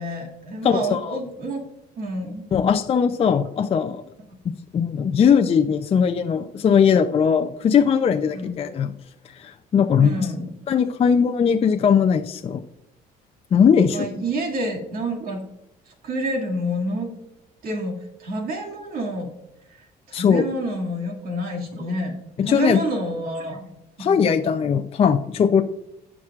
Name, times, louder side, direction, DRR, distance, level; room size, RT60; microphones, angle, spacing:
voice 1, 0.0-1.6 2.0-2.5 8.3-8.5 9.9-10.5 13.9-15.4 15.9-17.1 17.6-19.3 20.1-22.2 22.4-23.7 24.0-24.3, right 1 dB, 60° right, 0 dB, 2.2 m, -28 dB
voice 2, 0.6-1.2 2.5-4.0 4.5-8.9 9.4-10.3 10.7-12.6 13.5-14.1 20.1-20.4 22.4-22.8 24.0-25.6, left 7 dB, 35° left, 7 dB, 0.5 m, -19 dB
16.0 x 6.0 x 2.4 m, 0.90 s
cardioid pair, 110°, 17 cm